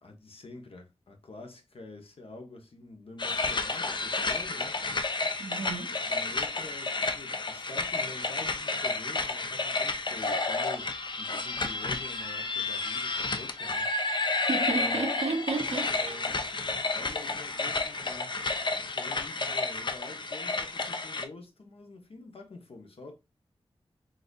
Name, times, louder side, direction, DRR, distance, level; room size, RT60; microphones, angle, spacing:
voice 1, 0.0-4.8 6.1-13.9 14.7-15.0 15.9-16.4 16.9-18.4 18.8-23.2, left 2 dB, 65° left, 0.8 m, -47 dB
sound 1, 3.2-21.3, left 3 dB, 45° left, 0.5 m, -31 dB
voice 2, 5.4-6.0 14.5-16.6, right 3 dB, 75° right, 0.7 m, -33 dB
4.0 x 2.6 x 2.3 m
cardioid pair, 40°, 11 cm